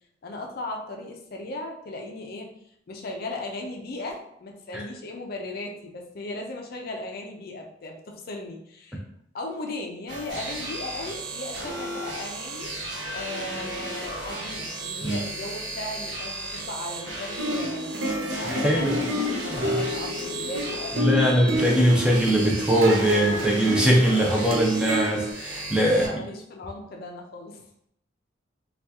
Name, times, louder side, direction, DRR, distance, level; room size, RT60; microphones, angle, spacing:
voice 1, 0.2-2.5 2.9-9.0 9.3-12.7 13.1-21.6 25.9-27.6, left 2 dB, 50° left, 1 dB, 0.4 m, -37 dB
sound 1, 10.1-26.1, right 2 dB, 65° right, 0.8 m, -35 dB
sound 2, 17.4-25.3, left 1 dB, 90° right, 0.6 m, -29 dB
voice 2, 18.4-19.0 19.5-19.8 20.9-26.2, right 1 dB, 5° right, -2 dB, 0.5 m, -21 dB
2.8 x 2.3 x 3.4 m, 0.72 s
head